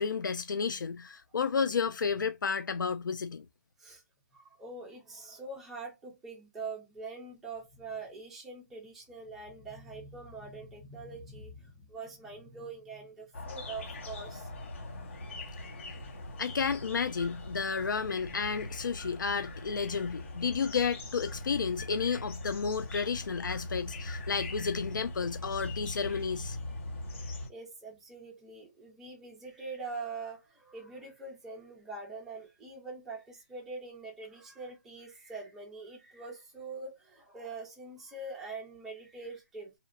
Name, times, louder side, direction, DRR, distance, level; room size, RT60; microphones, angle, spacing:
voice 1, 0.0-3.4 16.4-26.6, left 5 dB, 90° left, 0.4 m, -32 dB
voice 2, 4.3-14.5 27.5-39.7, right 3 dB, 5° right, 0.5 m, -44 dB
sound 1, 13.3-27.5, left 2 dB, 40° left, 0.7 m, -41 dB
2.8 x 2.0 x 2.4 m
hypercardioid pair, 170°, 10 cm